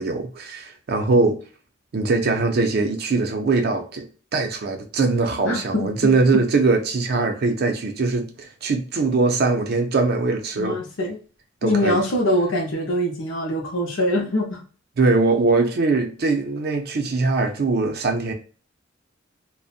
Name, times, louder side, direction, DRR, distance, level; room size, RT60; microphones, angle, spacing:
voice 1, 0.0-1.4 1.9-4.1 4.3-10.8 11.6-12.0 15.0-18.3, right 3 dB, 55° right, 0.5 m, -21 dB
voice 2, 5.4-6.4 10.6-11.2 11.6-14.6, left 1 dB, 70° left, 0.6 m, -23 dB
2.6 x 2.1 x 2.4 m
head